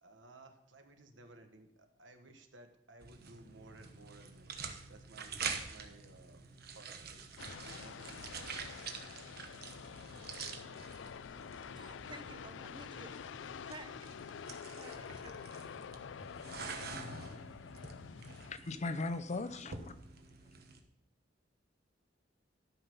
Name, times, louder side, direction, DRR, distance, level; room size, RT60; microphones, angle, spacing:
voice 1, 0.0-6.5 6.7-7.3 7.6-9.4, right 2 dB, 80° right, 6 dB, 1.4 m, -58 dB
sound 1, 3.0-20.8, right 5 dB, 55° right, 1.2 m, -47 dB
sound 2, 7.4-18.5, left 7 dB, 80° left, 0.4 m, -47 dB
voice 2, 11.7-13.1 13.6-13.9 14.7-15.9, right 2 dB, 25° right, 8 dB, 0.9 m, -53 dB
voice 3, 18.4-19.9, left 3 dB, 40° left, 12 dB, 0.6 m, -38 dB
12.5 x 5.7 x 5.4 m, 0.82 s
head